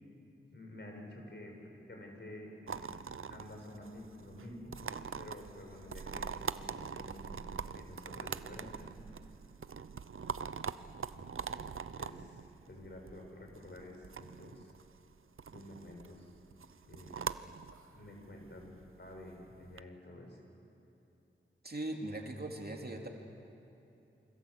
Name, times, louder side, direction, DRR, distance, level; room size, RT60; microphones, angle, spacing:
voice 1, 0.5-3.0 3.3-4.7 5.2-9.1 10.2-10.5 11.1-11.3 11.6-14.7 15.5-16.3 16.9-17.4 17.9-20.4, left 1 dB, 55° left, 1 dB, 6.2 m, -50 dB
sound 1, 2.7-19.8, right 6 dB, 85° right, 0.7 m, -43 dB
voice 2, 21.6-23.1, right 1 dB, 50° right, 1 dB, 2.9 m, -40 dB
28.0 x 25.0 x 8.0 m, 2.9 s
wide cardioid pair, 75°, 21 cm